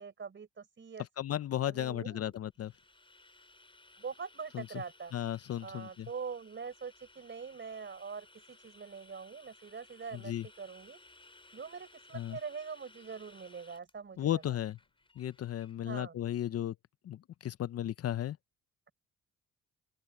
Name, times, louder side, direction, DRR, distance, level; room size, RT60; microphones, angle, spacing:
voice 1, 0.0-1.0 1.7-2.3 4.0-5.1 5.6-11.0 11.5-14.6 15.8-16.2, right 5 dB, 40° right, 4.9 m, -44 dB
voice 2, 1.2-2.7 4.5-4.7 5.1-6.1 10.1-10.5 12.1-12.4 14.2-14.8 15.2-16.7 17.0-18.4, left 11 dB, 55° left, 0.7 m, -35 dB
sound 1, 2.3-15.8, left 2 dB, 15° left, 4.9 m, -60 dB
open air
cardioid pair, 90°, 30 cm